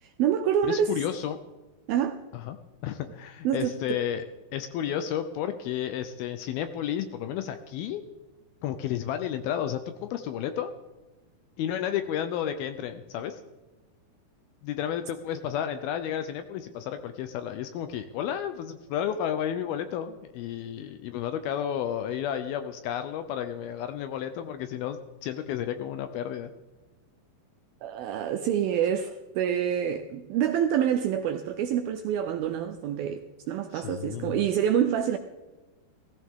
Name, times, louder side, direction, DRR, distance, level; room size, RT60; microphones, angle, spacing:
voice 1, 0.0-0.9 1.9-2.2 3.4-4.0 27.8-35.2, right 9 dB, 80° right, 2.1 m, -27 dB
voice 2, 0.6-1.4 2.3-2.6 2.8-4.2 4.5-8.0 8.6-10.7 11.6-13.4 14.6-26.5 33.7-34.4, left 10 dB, 80° left, 2.3 m, -32 dB
16.5 x 15.5 x 3.6 m
omnidirectional pair, 4.9 m